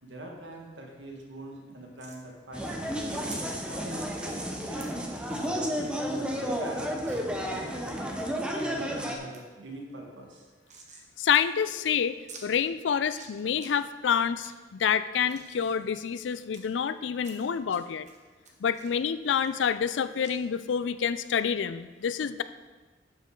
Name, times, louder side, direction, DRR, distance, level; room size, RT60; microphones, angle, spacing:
voice 1, 0.0-3.2 3.6-4.9 5.2-8.2 8.6-10.5, right 1 dB, 90° right, 0 dB, 1.7 m, -43 dB
sound 1, 2.0-2.2 3.3-3.4 4.2-4.4 4.8-4.9 5.3-5.5 5.9-6.0 6.3-6.4 7.1-7.2 7.7-8.2 8.7-9.0 9.3-9.4 9.7-11.1 11.3-11.4 11.7-11.8 12.3-12.4 13.0-13.7 14.1-14.5 15.0-16.6 17.2-17.8 18.1-19.9 20.2-20.4, right 4 dB, 40° right, 1.1 m, -50 dB
sound 2, 2.5-9.2, equal, 5° right, 0.8 m, -32 dB
voice 2, 11.2-12.2 12.4-18.1 18.6-22.4, left 7 dB, 85° left, 14 dB, 0.4 m, -28 dB
12.0 x 5.3 x 3.8 m, 1.3 s
head